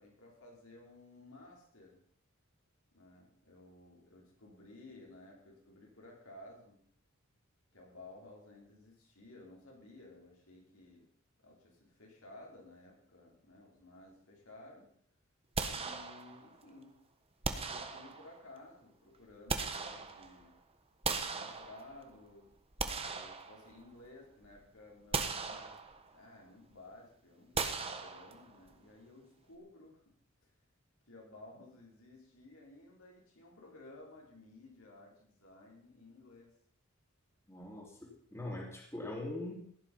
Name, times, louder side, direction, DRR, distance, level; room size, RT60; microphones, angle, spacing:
voice 1, 0.0-2.0 2.9-6.8 7.7-11.1 11.4-14.9 15.7-17.0 17.6-20.5 21.3-22.5 23.0-25.9 26.1-30.1 30.4-30.5 31.1-36.5, left 2 dB, 80° left, -2 dB, 5.3 m, -56 dB
sound 1, 15.5-16.6 17.4-18.5 19.1-20.5 21.0-22.1 22.6-24.1 24.4-24.6 25.1-26.2 27.5-28.7, right 4 dB, 30° right, 1.3 m, -38 dB
voice 2, 37.5-39.5, left 1 dB, 15° left, -1 dB, 3.2 m, -42 dB
16.0 x 11.0 x 5.7 m, 0.62 s
head